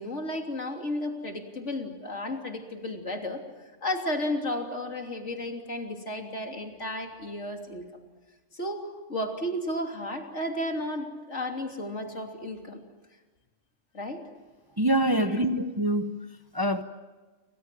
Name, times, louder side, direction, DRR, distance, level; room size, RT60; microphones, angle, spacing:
voice 1, 0.0-3.4 3.8-7.8 8.5-12.8 13.9-14.2 15.1-15.4, left 1 dB, 65° left, 3 dB, 3.6 m, -33 dB
voice 2, 14.8-16.2 16.5-16.8, right 1 dB, 20° right, 8 dB, 1.1 m, -25 dB
29.0 x 25.5 x 7.7 m, 1.2 s
omnidirectional pair, 1.3 m